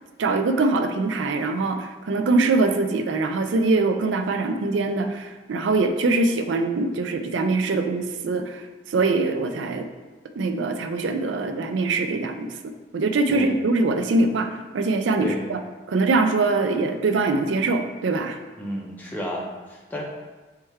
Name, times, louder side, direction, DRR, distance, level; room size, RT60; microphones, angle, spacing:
voice 1, 0.2-8.6 8.9-9.9 10.4-12.5 12.9-14.5 14.7-15.6 15.9-18.4, right 3 dB, 85° right, 7 dB, 0.4 m, -23 dB
voice 2, 18.6-20.0, equal, 10° left, -4 dB, 0.6 m, -31 dB
4.3 x 3.2 x 3.5 m, 1.2 s
head